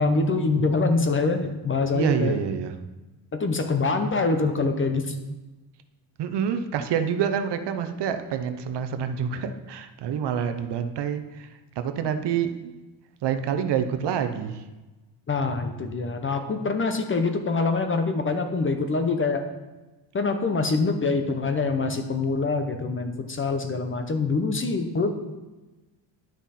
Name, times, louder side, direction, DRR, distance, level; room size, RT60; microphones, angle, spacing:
voice 1, 0.0-2.4 3.3-5.1 15.3-19.5 20.1-25.1, left 3 dB, 25° left, 7 dB, 0.8 m, -25 dB
voice 2, 1.9-2.7 6.2-12.7 13.2-14.6, right 8 dB, 65° right, 8 dB, 0.8 m, -27 dB
10.0 x 6.1 x 4.2 m, 1.1 s
cardioid pair, 125°, 45 cm